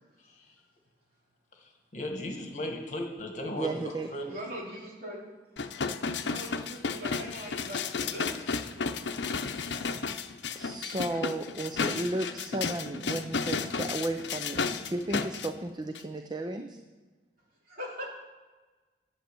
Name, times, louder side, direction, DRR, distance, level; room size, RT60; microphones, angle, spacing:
voice 1, 1.6-4.3, left 1 dB, 45° left, 3 dB, 1.8 m, -36 dB
voice 2, 3.6-4.1 9.8-10.0 10.6-16.8, right 2 dB, 25° right, 6 dB, 0.6 m, -34 dB
voice 3, 4.3-5.2 6.3-8.6 17.7-18.1, equal, 55° right, -3 dB, 3.4 m, -41 dB
sound 1, 5.6-15.5 15.9-16.0, left 5 dB, 85° left, 0.7 m, -33 dB
10.5 x 8.6 x 7.0 m, 1.3 s
head